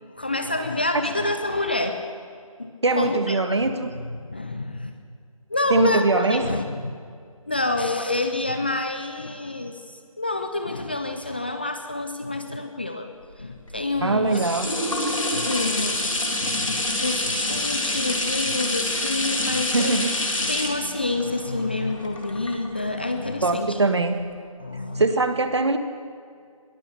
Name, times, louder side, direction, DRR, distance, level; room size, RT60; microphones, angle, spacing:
voice 1, 0.1-2.0 2.6-3.7 4.2-4.9 5.5-6.9 7.5-9.8 10.2-13.1 13.4-14.4 15.3-16.1 16.4-20.0 20.4-23.8 24.6-25.0, left 2 dB, 15° left, 6 dB, 0.5 m, -28 dB
voice 2, 2.8-3.9 5.7-6.5 14.0-14.7 19.7-20.1 23.4-24.2 24.9-25.8, right 3 dB, 50° right, 8 dB, 1.6 m, -22 dB
sound 1, 13.3-23.0 23.6-23.7, left 2 dB, 60° left, 3.4 m, -27 dB
21.5 x 17.5 x 6.8 m, 2.2 s
figure-of-eight pair, 160°, 19 cm